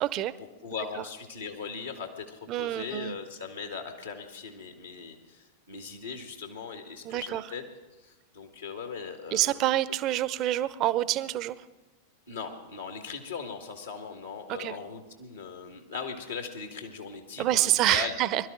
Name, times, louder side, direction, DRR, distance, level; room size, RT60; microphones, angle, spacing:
voice 1, 0.0-0.3 1.0-1.1 2.5-3.2 7.0-7.4 9.3-11.5 14.5-14.8 17.4-18.4, right 14 dB, 35° right, 17 dB, 0.6 m, -27 dB
voice 2, 0.6-7.6 8.0-9.6 12.3-18.2, left 5 dB, 75° left, 4 dB, 1.8 m, -39 dB
22.5 x 12.5 x 3.8 m, 1.2 s
figure-of-eight pair, 90°, 0 cm